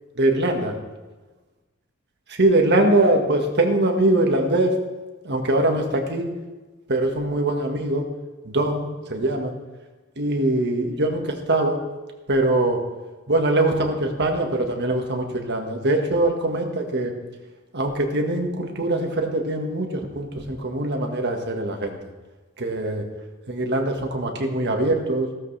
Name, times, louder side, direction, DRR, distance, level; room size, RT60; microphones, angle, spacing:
voice 1, 0.2-0.7 2.3-4.7 5.2-6.3 6.9-8.1 8.4-9.5 10.2-11.8 12.3-12.8 13.3-17.1 17.7-22.0 22.6-23.0 23.5-25.3, right 1 dB, 50° right, 3 dB, 1.7 m, -22 dB
15.5 x 13.0 x 3.4 m, 1.2 s
head